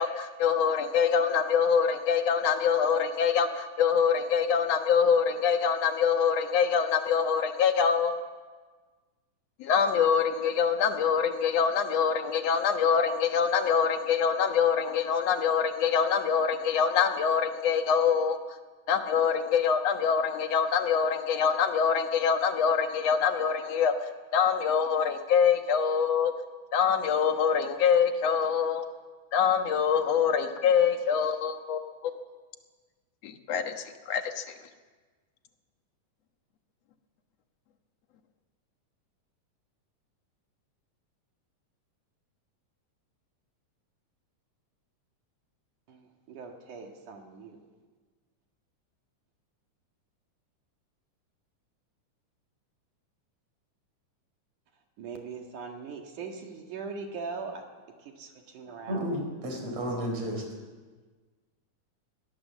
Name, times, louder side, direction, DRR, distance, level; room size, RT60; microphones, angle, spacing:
voice 1, 0.0-8.1 9.6-18.4 18.9-26.3 26.7-28.9 29.3-32.1 33.2-34.5, left 7 dB, 60° left, 6 dB, 2.2 m, -25 dB
voice 2, 45.9-47.6 55.0-57.6 58.0-59.1, right 4 dB, 70° right, 2 dB, 3.4 m, -40 dB
voice 3, 58.9-60.4, equal, 55° right, 2 dB, 5.4 m, -32 dB
22.5 x 16.5 x 7.4 m, 1.4 s
omnidirectional pair, 3.7 m